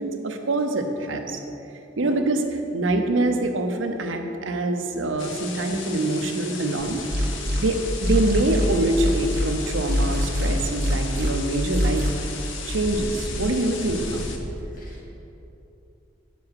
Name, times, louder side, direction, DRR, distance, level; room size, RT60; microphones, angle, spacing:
voice 1, 0.0-1.4 2.0-2.4 2.7-7.0 7.6-12.0 12.7-14.3, right 2 dB, 80° right, 5 dB, 0.8 m, -25 dB
voice 2, 2.0-2.1 5.2-5.3 7.2-7.3 14.8-15.0, right 1 dB, 45° left, -3 dB, 1.8 m, -43 dB
sound 1, 5.2-14.4, left 4 dB, 75° left, 0.9 m, -35 dB
sound 2, 6.8-7.6 8.0-9.4 9.9-11.3 11.7-12.1, equal, 50° right, 1.4 m, -23 dB
9.5 x 6.9 x 4.8 m, 2.9 s
head